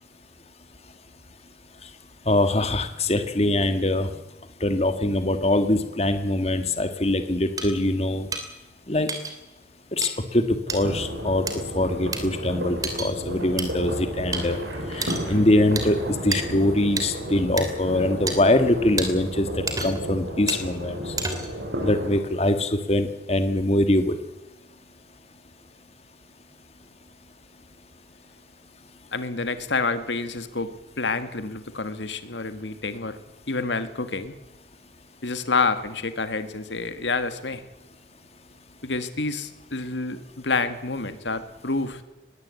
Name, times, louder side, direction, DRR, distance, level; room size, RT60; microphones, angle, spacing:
voice 1, 2.2-4.1 4.6-8.3 8.9-9.1 9.9-10.4 10.7-11.4 11.7-14.6 14.9-19.5 19.8-21.1 21.8-24.1, left 1 dB, 35° left, 9 dB, 1.7 m, -23 dB
sound 1, 7.6-7.7 8.3-8.4 9.1-9.3 10.0-10.1 10.7-10.8 11.5-11.6 12.1-12.2 12.8-13.1 13.6-13.7 14.3-14.4 15.0-15.3 15.8-15.9 16.3-16.4 17.0-17.1 17.6-17.7 18.3-18.4 19.0-19.1 19.7-20.1 20.5-20.6 21.2-21.6, right 3 dB, 20° right, 3.0 m, -29 dB
sound 2, 10.7-22.2, equal, 85° right, 7.0 m, -33 dB
voice 2, 29.1-33.2 33.5-34.3 35.2-37.6 38.8-42.0, left 3 dB, 85° left, 10 dB, 1.8 m, -28 dB
21.0 x 17.5 x 8.3 m, 1.0 s
head